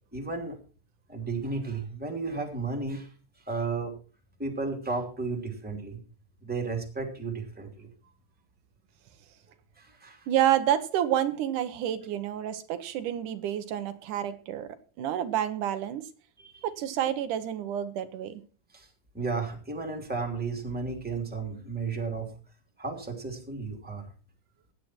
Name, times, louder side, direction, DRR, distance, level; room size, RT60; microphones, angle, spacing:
voice 1, 0.1-0.6 1.1-3.1 3.5-4.0 4.4-6.0 6.4-7.9 9.8-10.3 16.4-16.7 18.7-18.9 19.1-22.3 22.8-24.1, right 4 dB, 5° right, 3 dB, 2.6 m, -33 dB
voice 2, 10.3-14.7 15.0-16.0 16.6-18.4, right 11 dB, 85° right, 10 dB, 2.6 m, -29 dB
16.0 x 10.0 x 4.4 m, 0.37 s
omnidirectional pair, 3.5 m